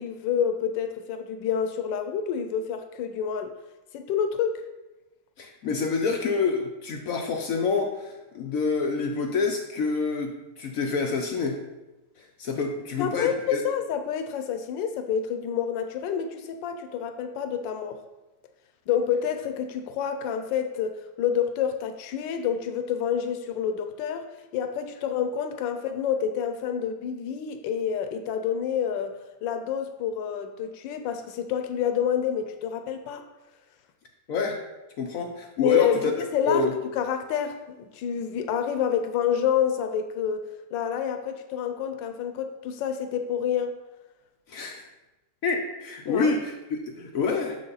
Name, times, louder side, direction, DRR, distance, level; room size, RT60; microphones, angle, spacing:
voice 1, 0.0-3.5 3.9-4.6 13.0-18.0 18.9-24.3 24.5-33.2 35.6-36.7 36.9-43.8 46.1-46.3, left 8 dB, 90° left, 8 dB, 1.3 m, -28 dB
voice 2, 5.4-11.6 12.2-13.6 34.3-34.6 35.0-36.1 36.4-36.7 44.5-44.8 45.4-47.6, left 4 dB, 65° left, 2 dB, 0.9 m, -27 dB
6.4 x 5.2 x 3.9 m, 1.1 s
omnidirectional pair, 1.9 m